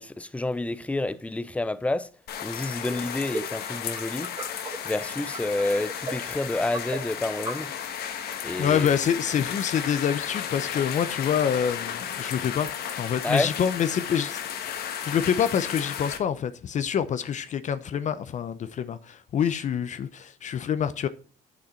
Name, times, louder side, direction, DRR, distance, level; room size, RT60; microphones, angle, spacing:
voice 1, 0.0-2.1 2.4-4.3 4.8-7.7 8.4-8.9 13.2-13.5, left 2 dB, 10° left, 0.6 m, -29 dB
sound 1, 2.3-16.2, left 9 dB, 70° left, 1.4 m, -34 dB
sound 2, 2.6-7.9, right 2 dB, 25° right, 1.9 m, -39 dB
voice 2, 8.6-12.7 13.0-14.4 14.8-21.1, left 8 dB, 45° left, 0.7 m, -26 dB
8.6 x 6.4 x 4.4 m
cardioid pair, 110°, 17 cm